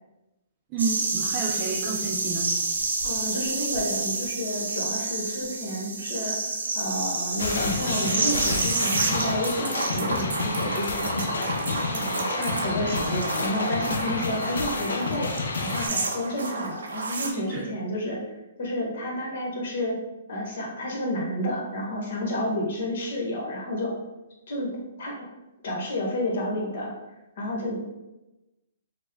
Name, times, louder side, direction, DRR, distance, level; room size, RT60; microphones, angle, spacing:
voice 1, 0.7-2.5 17.5-17.6, right 3 dB, 30° right, -3 dB, 0.5 m, -30 dB
sound 1, 0.8-17.3, right 3 dB, 85° right, 0.6 m, -29 dB
voice 2, 3.0-11.4 11.9-15.3 15.6-18.2 18.6-20.0 20.3-23.9 24.5-24.7 25.0-25.3 25.6-26.9 27.4-27.8, left 1 dB, 60° left, -2 dB, 1.2 m, -30 dB
sound 2, 7.4-15.9, left 3 dB, 80° left, 0.4 m, -30 dB
3.1 x 2.1 x 3.5 m, 1.0 s
hypercardioid pair, 145°, 0 cm